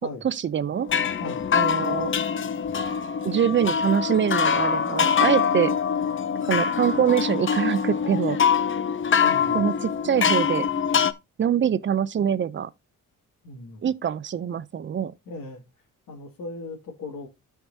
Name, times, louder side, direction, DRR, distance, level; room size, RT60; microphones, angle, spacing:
voice 1, 0.2-0.9 1.5-2.1 3.2-5.8 6.5-8.4 9.5-10.7 11.4-12.7 13.8-15.1, right 8 dB, 35° right, 0.5 m, -24 dB
sound 1, 0.8-11.1, left 7 dB, 35° left, 0.7 m, -24 dB
voice 2, 9.2-9.7 13.4-13.8 15.3-15.6 16.1-17.3, left 2 dB, 70° left, 2.3 m, -37 dB
13.0 x 4.7 x 2.7 m
cardioid pair, 100°, 33 cm